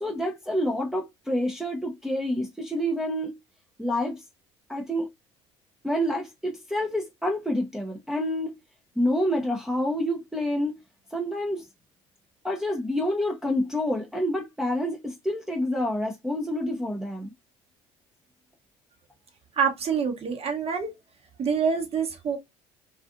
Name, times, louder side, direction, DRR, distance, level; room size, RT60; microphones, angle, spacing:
voice 1, 0.0-3.3 3.8-4.2 4.7-5.1 5.8-8.5 9.0-10.8 11.1-11.7 12.4-17.3, left 1 dB, 5° right, 0.6 m, -28 dB
voice 2, 19.6-20.9 21.4-22.4, right 6 dB, 40° right, 1.0 m, -26 dB
2.4 x 2.4 x 2.5 m
hypercardioid pair, 70°, 16 cm